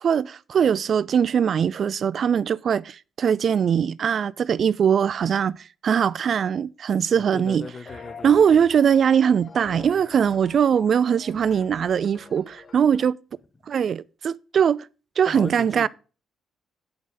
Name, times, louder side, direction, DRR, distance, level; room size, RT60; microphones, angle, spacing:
voice 1, 0.0-7.7 8.2-13.2 13.7-14.9 15.2-15.9, right 7 dB, 55° right, 0.3 m, -21 dB
voice 2, 7.1-8.7 15.3-15.9, left 3 dB, 25° left, 0.7 m, -38 dB
sound 1, 7.5-13.0, left 4 dB, 45° left, 1.1 m, -45 dB
7.9 x 5.4 x 5.1 m
cardioid pair, 90°, 0 cm